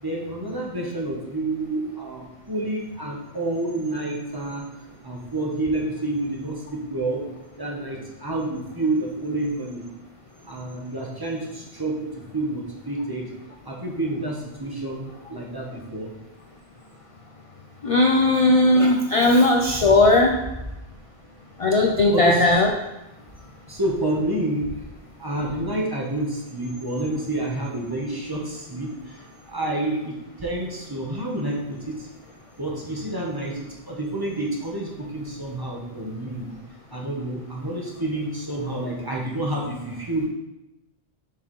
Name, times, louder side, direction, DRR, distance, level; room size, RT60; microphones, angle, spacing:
voice 1, 0.0-4.6 5.0-7.3 7.6-9.8 10.4-13.2 13.6-16.1 19.7-19.9 22.1-22.6 23.7-24.9 25.2-32.1 32.6-36.5 36.9-40.3, right 1 dB, 20° right, -3 dB, 1.0 m, -29 dB
voice 2, 17.8-20.4 21.6-22.7, left 2 dB, 50° left, 3 dB, 0.4 m, -17 dB
6.9 x 4.8 x 3.1 m, 0.96 s
omnidirectional pair, 1.1 m